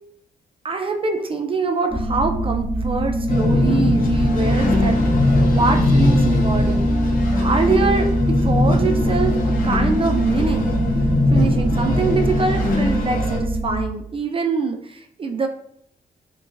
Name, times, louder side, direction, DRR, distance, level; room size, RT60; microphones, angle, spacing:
voice 1, 0.6-6.9 7.4-10.8 11.3-15.5, right 4 dB, 35° right, 4 dB, 0.3 m, -24 dB
sound 1, 1.9-13.8, equal, 10° right, 1.0 m, -22 dB
sound 2, 3.3-13.4, left 2 dB, 65° left, 0.7 m, -22 dB
3.0 x 2.6 x 2.4 m, 0.68 s
cardioid pair, 85°, 16 cm